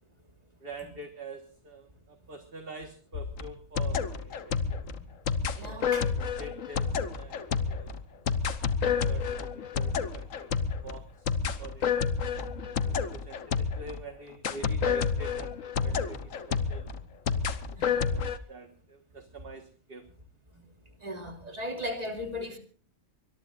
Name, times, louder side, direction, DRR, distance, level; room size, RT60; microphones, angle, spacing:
voice 1, 0.6-4.9 5.6-7.9 8.6-12.0 12.3-16.9 17.9-20.1, right 3 dB, 45° right, 1.8 m, -46 dB
sound 1, 3.1-14.0 14.4-18.4, left 6 dB, 80° left, 1.5 m, -30 dB
voice 2, 5.5-6.0 17.3-17.5 17.7-18.0 20.5-20.6 21.0-22.6, left 1 dB, 30° right, 3.1 m, -37 dB
23.5 x 22.0 x 2.6 m
omnidirectional pair, 1.4 m